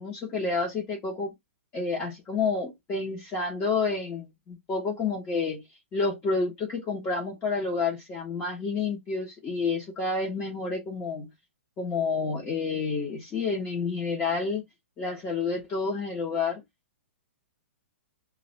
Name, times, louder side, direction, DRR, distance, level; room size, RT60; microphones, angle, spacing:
voice 1, 0.0-1.3 1.7-5.6 5.9-11.3 11.8-14.6 15.0-16.6, left 4 dB, 25° left, 0.9 m, -29 dB
2.5 x 2.4 x 3.0 m
hypercardioid pair, 120°, 7 cm